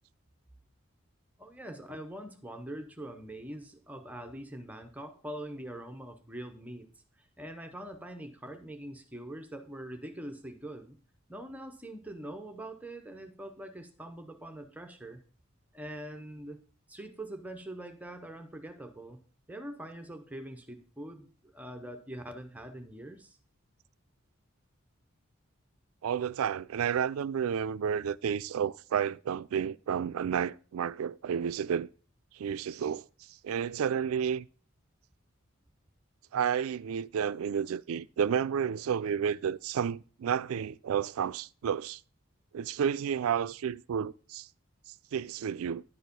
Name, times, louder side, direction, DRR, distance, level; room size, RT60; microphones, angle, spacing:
voice 1, 1.4-6.9 7.2-11.0 11.3-15.2 15.7-16.6 16.9-19.2 19.5-23.4, right 1 dB, 5° right, 0.6 m, -43 dB
voice 2, 26.0-31.9 32.3-33.0 33.4-34.5 36.3-42.0 42.5-44.5 45.1-45.8, right 8 dB, 85° right, 0.3 m, -31 dB
10.5 x 4.7 x 5.2 m
head